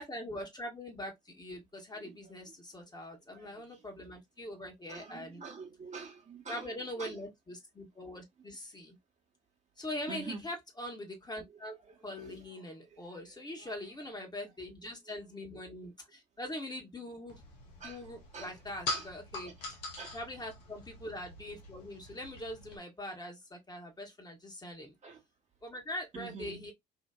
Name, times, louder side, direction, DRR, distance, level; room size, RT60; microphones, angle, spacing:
voice 1, 0.0-5.4 6.5-9.0 9.8-11.8 12.0-17.4 17.8-19.5 20.1-24.9 25.6-26.7, left 1 dB, 20° left, 1.2 m, -42 dB
voice 2, 1.9-2.5 2.9-3.0 3.3-3.9 4.9-7.2 7.9-8.1 10.1-10.5 11.5-14.2 15.1-15.6 17.8-18.0 18.3-18.6 18.9-19.1 19.4-19.7 20.0-20.2 25.0-25.2 26.1-26.7, right 5 dB, 35° right, 1.1 m, -48 dB
sound 1, 17.3-22.8, left 2 dB, 80° left, 0.8 m, -43 dB
2.8 x 2.5 x 2.3 m
figure-of-eight pair, 50°, 21 cm